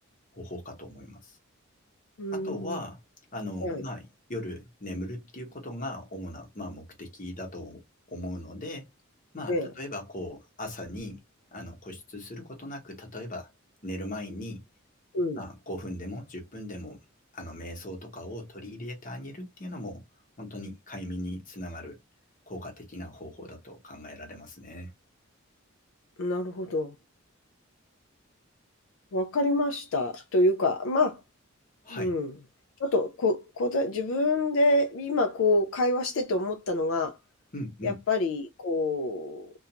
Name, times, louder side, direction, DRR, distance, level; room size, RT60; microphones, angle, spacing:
voice 1, 0.3-1.4 2.3-3.0 3.3-8.9 9.3-11.2 11.5-13.5 13.8-14.7 15.3-17.0 17.3-20.0 20.4-22.0 22.5-24.9 31.8-32.1 37.5-38.0, left 1 dB, 40° left, 1.0 m, -39 dB
voice 2, 2.2-2.8 3.6-3.8 9.5-9.7 15.1-15.4 26.2-26.9 29.1-31.2 31.9-32.3 32.8-37.2 37.8-39.5, left 2 dB, 65° left, 0.4 m, -27 dB
2.5 x 2.2 x 2.8 m
head